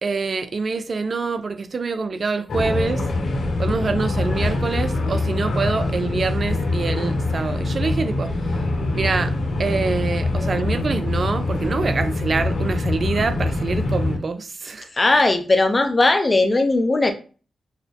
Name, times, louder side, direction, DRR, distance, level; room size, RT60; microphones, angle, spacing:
voice 1, 0.0-3.0 3.6-8.3 8.9-9.3 9.6-14.9, right 4 dB, 55° right, 0.5 m, -25 dB
sound 1, 2.5-14.2, left 2 dB, 80° left, 1.7 m, -24 dB
voice 2, 14.9-17.1, left 2 dB, 35° left, 0.7 m, -18 dB
6.4 x 2.2 x 2.7 m
cardioid pair, 50°, 0 cm